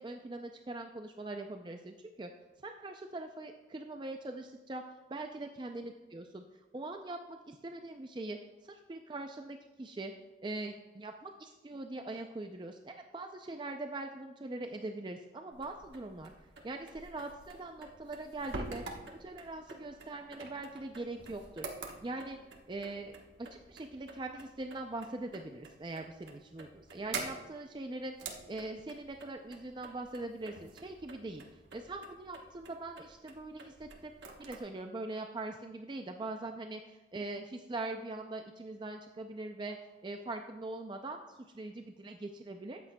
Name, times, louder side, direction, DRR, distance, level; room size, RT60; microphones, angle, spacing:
voice 1, 0.0-2.3 2.6-4.8 5.1-6.4 6.7-10.1 10.4-16.3 16.6-18.8 19.2-22.4 22.7-34.1 34.4-39.8 40.0-42.8, right 2 dB, 25° right, 5 dB, 0.4 m, -42 dB
sound 1, 15.5-34.6, right 3 dB, 70° right, 1.2 m, -48 dB
13.0 x 8.4 x 2.2 m, 1.1 s
head